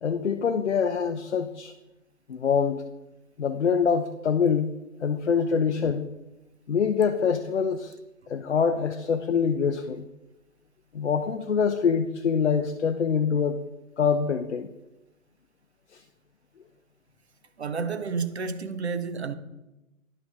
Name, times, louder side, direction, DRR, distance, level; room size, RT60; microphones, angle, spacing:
voice 1, 0.0-1.7 2.3-2.8 3.4-4.7 5.0-6.1 6.7-8.0 8.3-10.1 10.9-13.6 14.0-14.7 15.9-16.0, left 6 dB, 55° left, 0.5 m, -25 dB
voice 2, 17.6-19.3, right 5 dB, 50° right, 0.7 m, -30 dB
11.0 x 6.5 x 2.4 m
figure-of-eight pair, 160°, 42 cm